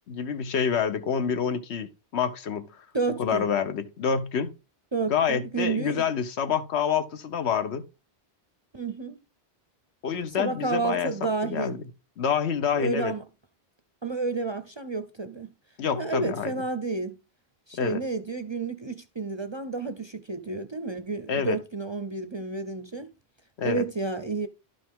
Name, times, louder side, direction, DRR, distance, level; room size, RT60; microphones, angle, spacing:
voice 1, 0.1-2.7 3.2-4.5 5.1-7.8 10.0-11.8 12.2-13.1 15.8-16.5 17.8-18.0 21.3-21.6 23.6-23.8, left 7 dB, 80° left, 1.1 m, -27 dB
voice 2, 2.9-3.5 4.9-6.0 8.7-9.2 10.4-11.8 12.7-13.2 14.0-15.5 16.0-17.2 17.7-23.1 23.6-24.5, right 3 dB, 35° right, 0.5 m, -30 dB
11.5 x 5.3 x 3.6 m
omnidirectional pair, 1.1 m